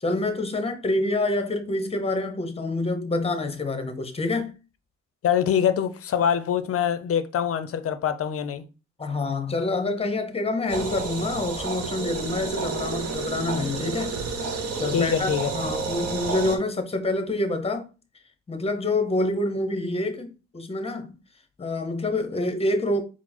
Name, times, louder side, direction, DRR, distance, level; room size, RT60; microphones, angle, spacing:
voice 1, 0.0-4.5 9.0-14.1 14.8-17.9 18.5-21.1 21.6-23.0, left 2 dB, 20° left, 0.8 m, -27 dB
voice 2, 5.2-8.6 14.9-15.5, left 8 dB, 50° left, 0.5 m, -24 dB
sound 1, 10.7-16.6, right 4 dB, 55° right, 1.1 m, -30 dB
4.5 x 2.0 x 4.2 m
cardioid pair, 90°, 30 cm